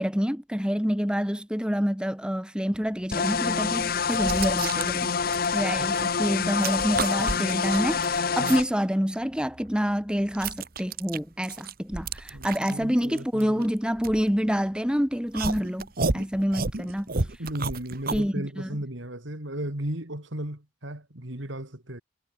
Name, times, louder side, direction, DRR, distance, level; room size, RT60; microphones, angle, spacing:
voice 1, 0.0-5.1 5.5-15.9 16.1-17.1 18.1-18.7, equal, 5° right, 1.9 m, -27 dB
sound 1, 3.0-3.2 3.8-6.1 6.4-8.7 9.1-14.8 15.3-18.3, right 3 dB, 45° right, 1.4 m, -32 dB
sound 2, 3.1-8.6, left 5 dB, 45° left, 0.8 m, -26 dB
voice 2, 12.3-13.7 17.4-22.0, right 1 dB, 65° right, 3.1 m, -35 dB
head